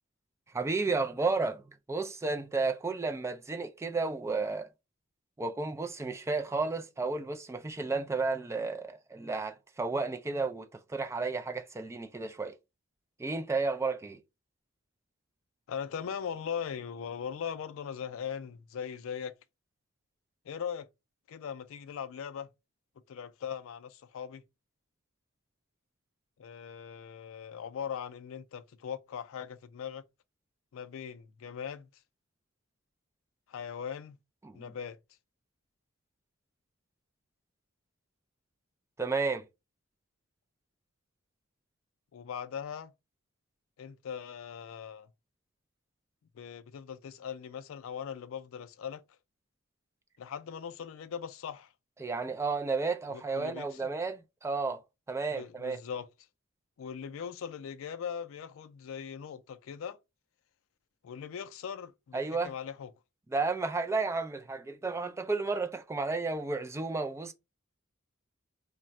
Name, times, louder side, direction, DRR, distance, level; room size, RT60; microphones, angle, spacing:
voice 1, 0.5-1.6 1.9-4.7 5.4-12.6 13.2-14.2 34.4-34.7 39.0-39.4 52.0-54.8 55.1-55.8 62.1-62.5 63.3-67.3, right 3 dB, 15° right, 0.3 m, -32 dB
voice 2, 15.7-19.3 20.5-20.9 21.3-22.5 23.1-24.4 26.4-30.0 30.7-31.9 33.5-34.2 34.5-35.0 42.1-42.9 43.8-45.1 46.3-49.0 50.2-51.7 53.1-53.9 55.3-56.1 56.8-60.0 61.0-62.9, left 7 dB, 70° left, 0.4 m, -40 dB
2.4 x 2.2 x 3.9 m
head